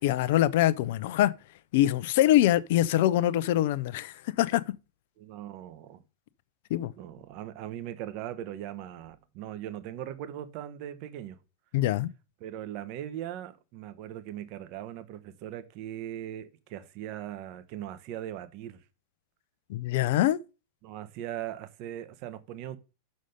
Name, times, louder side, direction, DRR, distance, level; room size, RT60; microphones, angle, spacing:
voice 1, 0.0-1.3 1.7-4.6 6.7-6.9 11.7-12.1 19.7-20.4, left 13 dB, 50° left, 0.5 m, -24 dB
voice 2, 5.2-6.0 7.0-11.4 12.4-18.8 20.8-22.8, right 11 dB, 45° right, 1.0 m, -39 dB
6.4 x 6.3 x 5.3 m
figure-of-eight pair, 90°, 0 cm